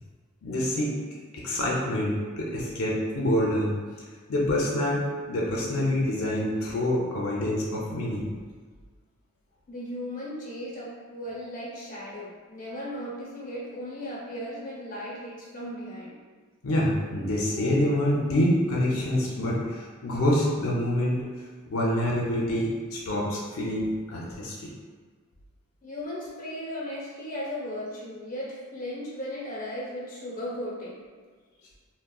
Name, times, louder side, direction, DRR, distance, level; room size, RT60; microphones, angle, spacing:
voice 1, 0.4-0.9 1.3-3.7 4.3-8.3 16.6-21.3 21.7-24.7, left 1 dB, 85° left, -4 dB, 0.5 m, -26 dB
voice 2, 9.7-16.2 25.8-31.0, left 1 dB, 40° left, -7 dB, 0.8 m, -36 dB
3.5 x 2.1 x 2.3 m, 1.5 s
head